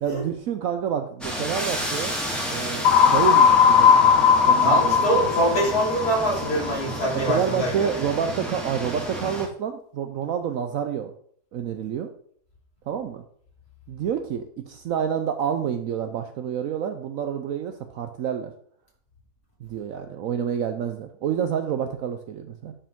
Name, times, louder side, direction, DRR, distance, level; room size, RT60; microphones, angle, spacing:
voice 1, 0.0-2.2 2.5-5.1 7.3-11.1 11.5-12.1 12.9-13.2 13.9-18.5 19.6-22.7, right 8 dB, 70° right, 7 dB, 0.9 m, -28 dB
sound 1, 1.2-9.5, equal, ahead, 1.9 m, -32 dB
sound 2, 2.8-6.7, left 7 dB, 85° left, 1.3 m, -18 dB
voice 2, 4.6-7.9, equal, 60° left, -4 dB, 3.5 m, -24 dB
9.8 x 5.0 x 3.6 m, 0.62 s
omnidirectional pair, 1.8 m